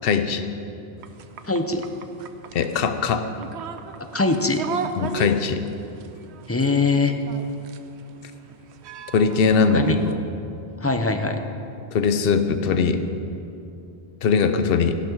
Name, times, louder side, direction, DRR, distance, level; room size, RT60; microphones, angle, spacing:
voice 1, 0.0-0.5 2.5-3.2 5.0-5.6 9.1-10.2 11.9-13.0 14.2-15.0, left 5 dB, 60° left, 9 dB, 0.9 m, -20 dB
sound 1, 1.0-10.1, right 6 dB, 75° right, 0.9 m, -37 dB
voice 2, 1.4-1.9 4.1-4.6 6.5-7.1 9.7-10.0 10.8-11.4, left 3 dB, 15° left, 6 dB, 0.6 m, -22 dB
14.5 x 11.5 x 4.6 m, 2.7 s
omnidirectional pair, 1.1 m